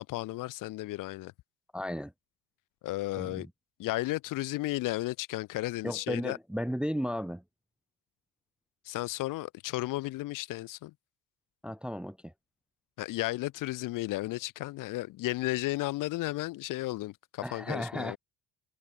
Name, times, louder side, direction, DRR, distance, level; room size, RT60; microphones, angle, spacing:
voice 1, 0.0-1.3 2.8-3.5 3.8-6.4 8.9-10.9 13.0-18.2, left 18 dB, 60° left, 0.6 m, -34 dB
voice 2, 1.7-2.1 3.1-3.5 5.8-7.4 11.6-12.3 17.4-18.2, equal, 5° right, 0.4 m, -34 dB
cardioid pair, 135°, 36 cm